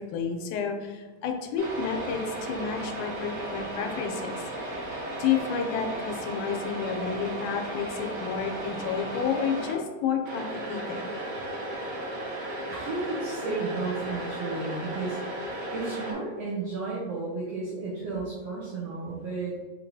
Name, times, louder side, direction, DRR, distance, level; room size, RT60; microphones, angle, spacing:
voice 1, 0.0-4.4 4.7-4.8 5.2-11.1, left 6 dB, 90° left, 4 dB, 2.1 m, -30 dB
sound 1, 1.6-9.7 10.3-16.1, right 1 dB, 65° right, 1.8 m, -35 dB
voice 2, 12.7-15.2 15.7-19.5, right 3 dB, 80° right, -5 dB, 1.4 m, -33 dB
5.1 x 2.9 x 2.6 m, 1.3 s
omnidirectional pair, 3.5 m